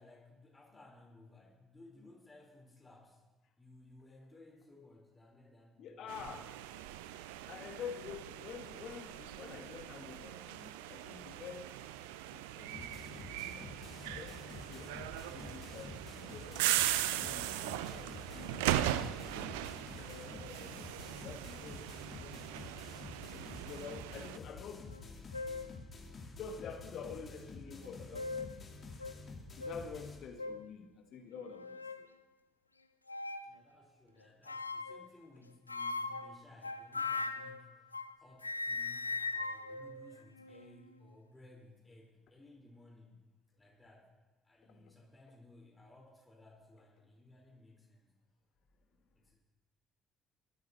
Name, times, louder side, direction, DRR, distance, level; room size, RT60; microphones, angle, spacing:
voice 1, 0.0-3.2 3.6-6.5 33.4-37.9 38.2-43.2 43.6-44.1 44.4-48.1 49.1-49.3, left 2 dB, 20° left, -3 dB, 5.2 m, -59 dB
voice 2, 5.8-6.5 7.5-11.7 12.3-13.7 14.1-14.4 14.7-14.9 15.3-17.5 17.8-20.9 21.2-22.4 23.3-24.9 26.3-28.6 29.6-32.1 44.7-44.9, left 6 dB, 55° left, 4 dB, 1.5 m, -48 dB
sound 1, 6.1-24.4, right 13 dB, 70° right, 0.4 m, -39 dB
sound 2, 12.7-30.2, left 3 dB, 40° left, 2.6 m, -50 dB
sound 3, 24.9-25.0 25.3-25.7 26.5-26.6 27.8-28.6 29.0-29.2 29.6-29.8 30.4-30.7 31.3-32.1 33.1-33.5 34.5-35.1 35.7-38.2 38.4-40.7, left 3 dB, 90° left, 0.3 m, -40 dB
23.0 x 9.3 x 3.3 m, 1.1 s
figure-of-eight pair, 50°, 0 cm